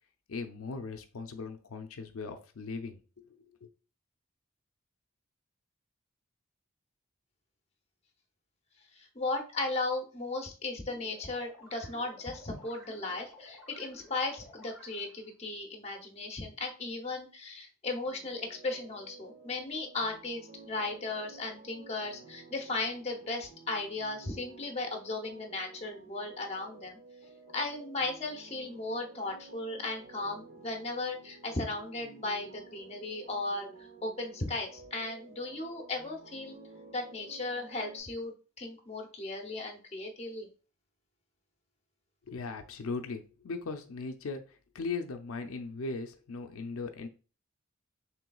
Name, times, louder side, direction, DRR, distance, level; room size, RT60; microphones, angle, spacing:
voice 1, 0.3-3.3 3.6-3.7 42.3-47.1, left 4 dB, 85° left, 6 dB, 0.5 m, -38 dB
voice 2, 9.0-27.0 27.5-33.7 34.0-36.6 36.9-40.5, left 2 dB, 30° left, 3 dB, 0.7 m, -36 dB
sound 1, 10.9-15.3, left 1 dB, 5° right, 1.4 m, -54 dB
sound 2, 18.0-38.0, right 3 dB, 65° right, 1.3 m, -53 dB
5.9 x 3.2 x 2.3 m, 0.36 s
head